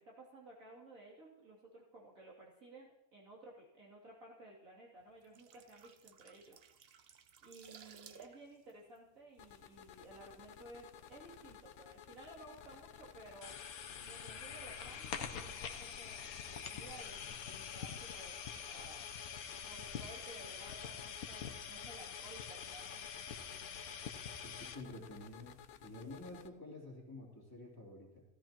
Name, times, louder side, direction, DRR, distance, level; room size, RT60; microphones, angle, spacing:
voice 1, 0.0-6.6 6.9-13.6 14.0-19.1 19.6-23.1, right 2 dB, 70° right, -4 dB, 3.3 m, -56 dB
sound 1, 5.1-9.9 10.2-10.4, right 7 dB, 55° right, 0.8 m, -59 dB
sound 2, 9.4-26.5, left 9 dB, 65° left, 0.9 m, -56 dB
sound 3, 13.4-24.7, left 7 dB, 80° left, 1.3 m, -45 dB
voice 2, 24.4-28.2, left 2 dB, 15° left, -4 dB, 3.2 m, -50 dB
16.5 x 13.5 x 3.0 m, 0.86 s
omnidirectional pair, 1.5 m